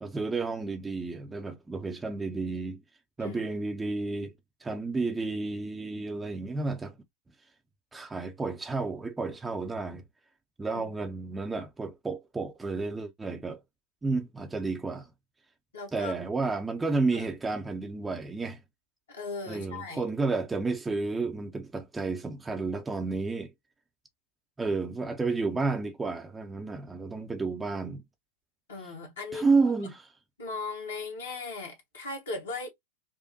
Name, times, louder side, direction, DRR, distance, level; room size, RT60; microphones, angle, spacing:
voice 1, 0.0-2.8 3.2-4.3 4.6-7.0 7.9-10.0 10.6-13.6 14.0-15.1 15.9-18.6 19.5-23.5 24.6-28.0 28.8-28.9 29.3-30.1, right 3 dB, 10° right, 0.6 m, -31 dB
voice 2, 15.7-16.1 17.1-17.3 19.1-20.0 28.7-29.5 30.4-32.7, left 3 dB, 65° left, 1.5 m, -38 dB
5.1 x 2.1 x 2.6 m
figure-of-eight pair, 90°, 0 cm